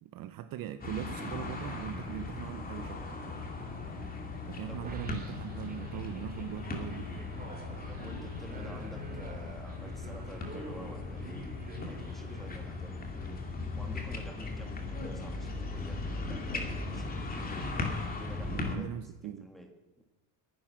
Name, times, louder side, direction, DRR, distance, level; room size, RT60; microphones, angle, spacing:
voice 1, 0.0-3.1 4.4-7.2 18.5-19.5, right 11 dB, 45° right, 11 dB, 0.7 m, -40 dB
sound 1, 0.8-18.8, left 3 dB, 20° left, 2.2 m, -38 dB
sound 2, 4.8-13.1, right 2 dB, 20° right, 2.2 m, -47 dB
voice 2, 7.9-11.5 11.8-13.4 13.8-17.6 18.2-18.9 19.2-19.7, equal, ahead, 3 dB, 2.0 m, -49 dB
21.0 x 10.5 x 6.1 m, 1.1 s
cardioid pair, 170°, 49 cm